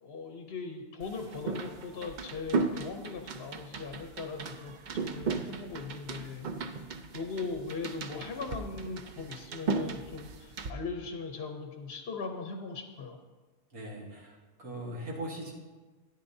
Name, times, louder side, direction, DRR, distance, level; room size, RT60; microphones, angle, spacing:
voice 1, 0.0-6.5 7.1-13.2, left 4 dB, 55° left, 4 dB, 0.9 m, -39 dB
sound 1, 1.0-10.7, right 4 dB, 60° right, 0.4 m, -36 dB
voice 2, 13.7-15.5, right 1 dB, 80° right, -2 dB, 2.0 m, -40 dB
13.5 x 10.0 x 2.7 m, 1.3 s
omnidirectional pair, 1.5 m